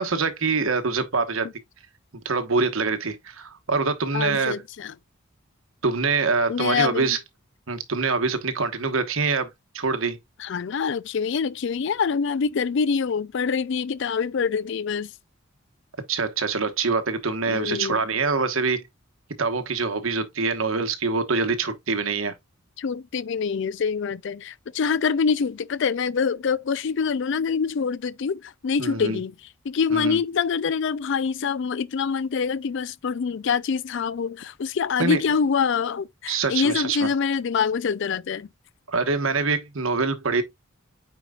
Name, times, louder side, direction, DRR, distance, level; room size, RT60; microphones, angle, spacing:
voice 1, 0.0-1.5 2.2-4.6 5.8-7.2 7.7-9.5 9.7-10.2 16.1-18.8 19.4-22.3 28.8-29.2 29.9-30.2 35.0-35.2 36.3-37.1 38.9-40.4, right 4 dB, 70° right, 1.2 m, -24 dB
voice 2, 4.1-4.9 6.5-7.1 10.4-15.1 17.5-18.0 22.8-29.3 29.7-38.5, left 6 dB, 55° left, 0.4 m, -25 dB
9.0 x 4.7 x 2.3 m
head